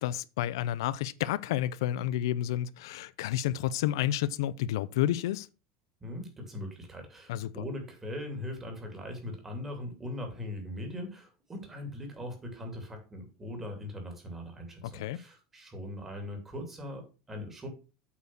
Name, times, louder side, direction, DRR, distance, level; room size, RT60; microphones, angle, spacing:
voice 1, 0.0-5.5 7.3-7.5 14.8-15.2, left 12 dB, 90° left, 0.5 m, -30 dB
voice 2, 6.0-17.7, left 1 dB, 15° right, 2.6 m, -40 dB
8.4 x 4.7 x 6.1 m
supercardioid pair, 160°, 2 cm